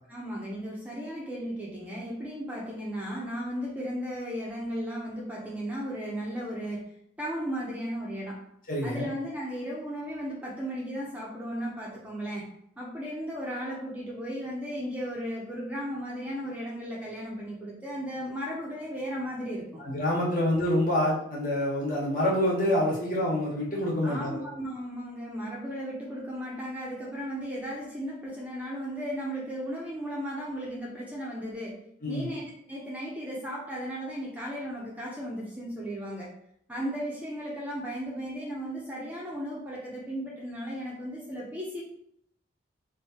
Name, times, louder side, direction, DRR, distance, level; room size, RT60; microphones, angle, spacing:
voice 1, 0.1-6.9 7.2-8.5 8.8-12.5 12.8-19.8 24.0-31.8 32.1-36.3 36.7-41.8, equal, 10° right, -4 dB, 0.6 m, -35 dB
voice 2, 8.7-9.1 19.8-24.4 32.0-32.3, left 1 dB, 45° left, -4 dB, 1.3 m, -27 dB
3.1 x 2.7 x 4.3 m, 0.71 s
head